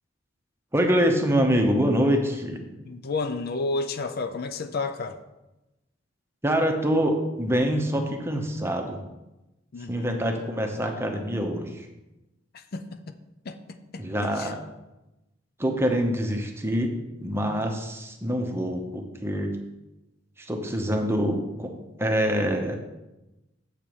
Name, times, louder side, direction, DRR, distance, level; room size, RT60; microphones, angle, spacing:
voice 1, 0.7-2.7 6.4-9.0 9.9-11.9 14.0-14.6 15.6-16.9 17.2-19.5 20.4-21.7 22.0-22.8, equal, 15° right, 3 dB, 0.9 m, -25 dB
voice 2, 2.8-5.2 9.7-10.2 12.5-13.1 13.5-13.6 13.9-14.0 14.4-14.5, left 3 dB, 50° left, 8 dB, 0.5 m, -31 dB
7.4 x 4.5 x 7.0 m, 1.0 s
head